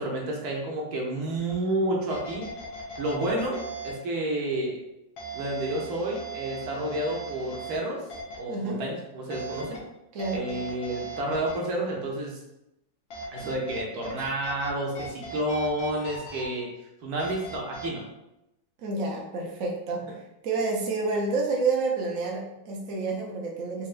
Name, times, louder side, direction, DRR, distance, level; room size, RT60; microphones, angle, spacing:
voice 1, 0.0-2.5 3.0-4.8 5.3-8.0 8.4-9.8 10.3-12.4 13.3-16.7 17.0-18.0, right 1 dB, 65° right, -1 dB, 1.0 m, -30 dB
sound 1, 1.5-1.6 2.1-3.9 5.2-7.8 8.1-8.4 9.3-9.8 10.2-11.5 13.1-14.7 14.9-16.4 17.2-17.9, right 2 dB, 80° left, 1.6 m, -39 dB
voice 2, 8.5-8.8 10.1-10.5 18.8-23.9, right 3 dB, 85° right, -1 dB, 0.7 m, -29 dB
4.4 x 2.7 x 2.4 m, 0.89 s
omnidirectional pair, 2.2 m